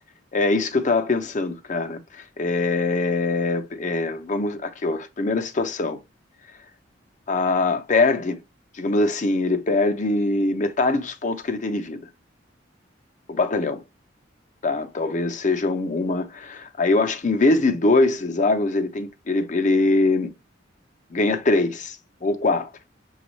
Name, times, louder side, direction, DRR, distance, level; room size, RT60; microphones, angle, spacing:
voice 1, 0.3-6.0 7.3-8.4 8.7-12.1 13.3-13.8 14.6-20.3 21.1-22.0 22.2-22.7, left 2 dB, 45° left, 0.6 m, -22 dB
5.9 x 2.3 x 3.0 m
head